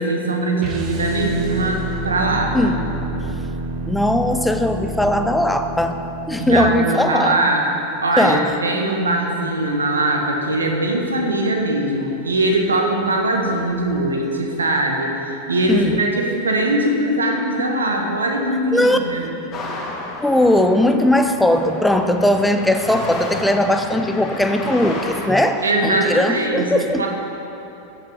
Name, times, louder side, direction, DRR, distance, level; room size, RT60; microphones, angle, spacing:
voice 1, 0.0-2.7 6.4-7.7 8.0-19.3 25.6-27.1, right 2 dB, 75° right, 2 dB, 1.4 m, -21 dB
sound 1, 0.6-6.7, right 1 dB, 35° right, 1.2 m, -29 dB
voice 2, 3.9-6.0 6.3-7.4 8.2-8.5 15.7-16.0 18.7-19.0 20.2-27.1, left 1 dB, 5° left, 7 dB, 0.6 m, -18 dB
sound 2, 19.5-25.3, left 2 dB, 30° left, 1.6 m, -32 dB
14.5 x 6.2 x 5.6 m, 3.0 s
figure-of-eight pair, 90°, 0 cm